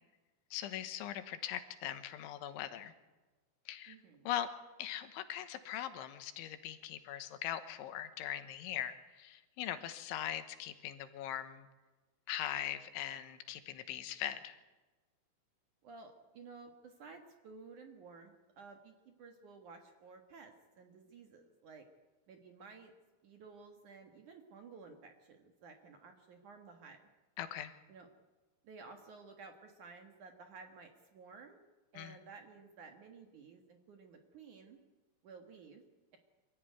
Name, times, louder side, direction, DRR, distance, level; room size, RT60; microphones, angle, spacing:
voice 1, 0.5-2.9 3.7-4.0 4.3-4.5 4.8-11.7 12.3-14.6 27.4-27.8 32.0-32.2, left 11 dB, 90° left, 10 dB, 3.6 m, -41 dB
voice 2, 3.9-4.3 15.8-21.9 22.3-22.9 23.2-27.0 27.9-28.1 28.6-31.6 31.9-34.8 35.2-35.8, right 4 dB, 55° right, 5 dB, 2.4 m, -54 dB
25.5 x 15.0 x 9.5 m, 1.2 s
omnidirectional pair, 5.4 m